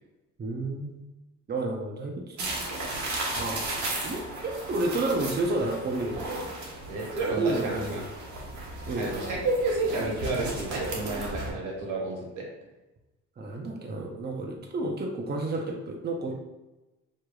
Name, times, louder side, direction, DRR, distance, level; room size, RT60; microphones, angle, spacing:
voice 1, 0.4-1.0 1.5-2.7 3.4-6.3 7.4-8.0 8.9-9.1 13.4-16.3, right 2 dB, 35° right, 1 dB, 0.8 m, -31 dB
sound 1, 2.4-11.5, right 2 dB, 65° right, 1.4 m, -35 dB
voice 2, 6.9-8.0 9.0-12.4, right 2 dB, 90° right, -2 dB, 1.4 m, -30 dB
6.5 x 3.1 x 2.4 m, 1.0 s
cardioid pair, 90°, 30 cm